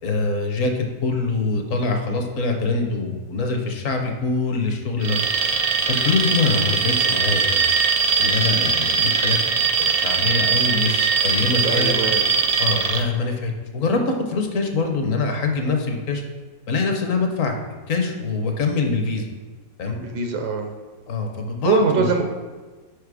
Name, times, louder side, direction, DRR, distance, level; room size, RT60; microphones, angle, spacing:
voice 1, 0.0-5.2 5.9-7.7 8.2-9.4 9.8-11.9 12.6-16.2 16.7-17.5 17.9-19.3 19.8-20.0 21.1-22.2, left 3 dB, 60° left, 4 dB, 1.1 m, -24 dB
Alarm, 5.0-13.0, right 5 dB, 60° right, 0.8 m, -21 dB
voice 2, 11.6-12.3 12.9-13.1 20.0-20.7 21.6-22.2, right 4 dB, 80° right, 3 dB, 1.3 m, -23 dB
5.2 x 5.0 x 4.7 m, 1.3 s
omnidirectional pair, 1.7 m